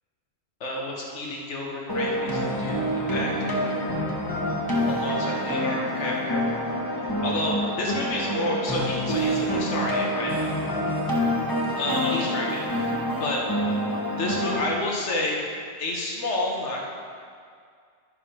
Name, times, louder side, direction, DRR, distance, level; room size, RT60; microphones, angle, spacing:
voice 1, 0.6-3.8 4.9-6.5 6.9-10.3 11.8-13.4 14.2-15.5 15.8-16.8, left 2 dB, 75° left, -2 dB, 1.6 m, -30 dB
sound 1, 1.9-14.7, equal, 20° left, 1.2 m, -27 dB
11.5 x 5.1 x 5.7 m, 2.1 s
omnidirectional pair, 1.2 m